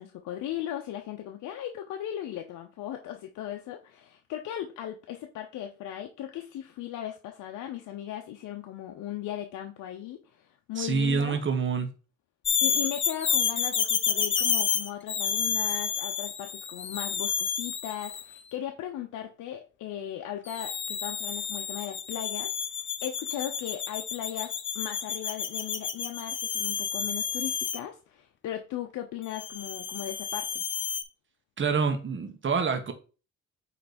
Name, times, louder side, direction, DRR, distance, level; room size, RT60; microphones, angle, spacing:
voice 1, 0.0-11.4 12.6-22.5 23.0-30.6, left 11 dB, 80° left, 0.8 m, -37 dB
voice 2, 10.8-11.9 31.6-32.9, right 5 dB, 40° right, 1.4 m, -27 dB
sound 1, 12.5-18.3 20.5-27.8 29.3-31.0, left 7 dB, 40° left, 0.9 m, -30 dB
8.4 x 3.3 x 4.3 m
cardioid pair, 90°, 30 cm